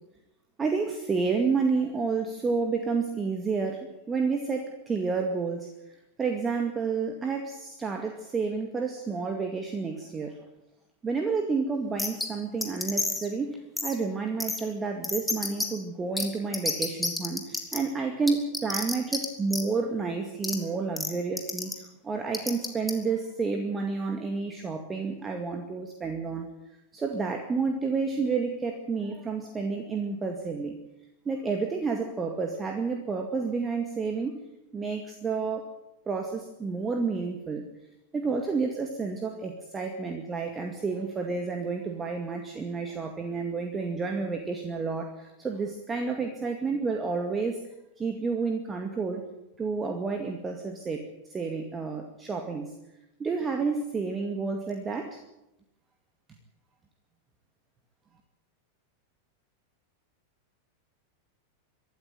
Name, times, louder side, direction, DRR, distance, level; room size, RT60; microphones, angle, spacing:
voice 1, 0.6-10.4 11.0-26.5 26.9-30.8 31.3-34.4 34.7-35.6 36.1-37.7 38.1-47.6 48.0-49.2 49.6-52.7 53.2-55.2, right 4 dB, 20° right, 4 dB, 2.2 m, -30 dB
sound 1, 12.0-12.3 12.6-13.3 13.8-13.9 14.4-14.6 15.0-15.7 16.2-16.3 16.5-17.8 18.3-19.2 19.5-19.6 20.4-20.5 21.0-21.1 21.4-21.7 22.3-22.9, left 2 dB, 5° left, 3.1 m, -29 dB
24.0 x 13.0 x 9.4 m, 0.89 s
figure-of-eight pair, 90°, 0 cm